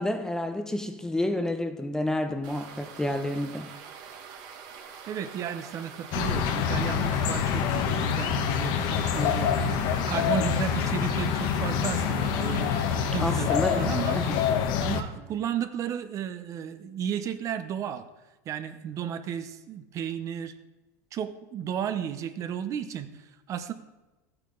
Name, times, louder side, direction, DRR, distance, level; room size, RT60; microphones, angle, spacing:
voice 1, 0.0-3.7 13.2-14.4, left 1 dB, 5° left, 0.6 m, -29 dB
sound 1, 2.4-14.5, right 6 dB, 55° right, 1.5 m, -45 dB
voice 2, 5.1-14.2 14.8-18.1 18.5-20.5 21.1-23.7, right 9 dB, 35° right, 0.7 m, -33 dB
sound 2, 6.1-15.0, left 7 dB, 55° left, 1.0 m, -26 dB
13.0 x 8.9 x 3.8 m
supercardioid pair, 135°, 9 cm